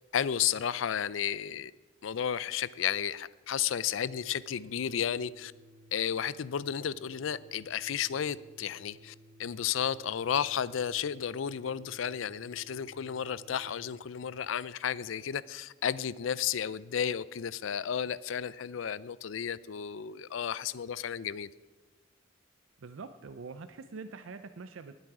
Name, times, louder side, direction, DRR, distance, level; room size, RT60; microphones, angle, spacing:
voice 1, 0.1-1.7 2.0-5.5 5.9-9.1 9.4-21.5, left 8 dB, 75° left, 19 dB, 0.4 m, -33 dB
Organ, 3.8-14.1, right 1 dB, 60° right, 1.4 m, -57 dB
voice 2, 22.8-24.9, right 4 dB, 80° right, 10 dB, 0.5 m, -44 dB
19.0 x 8.2 x 4.8 m, 1.2 s
head